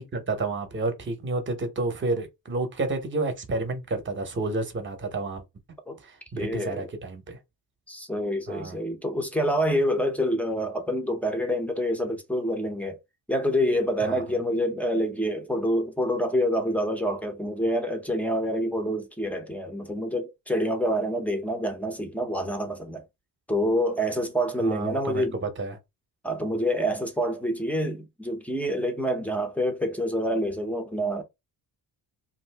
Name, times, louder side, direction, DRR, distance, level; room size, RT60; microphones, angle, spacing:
voice 1, 0.0-5.4 6.0-7.4 8.5-8.8 14.0-14.2 24.6-25.8, right 2 dB, 30° right, 0.9 m, -30 dB
voice 2, 6.3-6.9 7.9-13.0 13.3-23.0 23.5-25.4 26.2-31.2, equal, 5° left, 0.6 m, -27 dB
2.7 x 2.5 x 3.3 m
cardioid pair, 125°, 42 cm